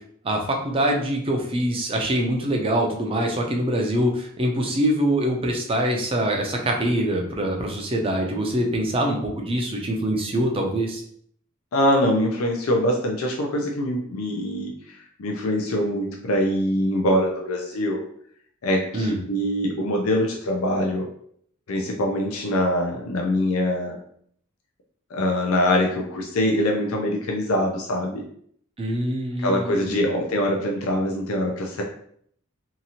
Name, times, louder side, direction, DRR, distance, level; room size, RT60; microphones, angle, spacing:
voice 1, 0.2-11.0 18.9-19.2 28.8-30.1, right 1 dB, 25° right, 1 dB, 0.5 m, -24 dB
voice 2, 11.7-14.7 15.2-18.0 18.6-21.0 21.7-24.0 25.1-28.2 29.4-31.8, left 1 dB, 85° left, 1 dB, 0.5 m, -23 dB
2.8 x 2.4 x 2.8 m, 0.64 s
head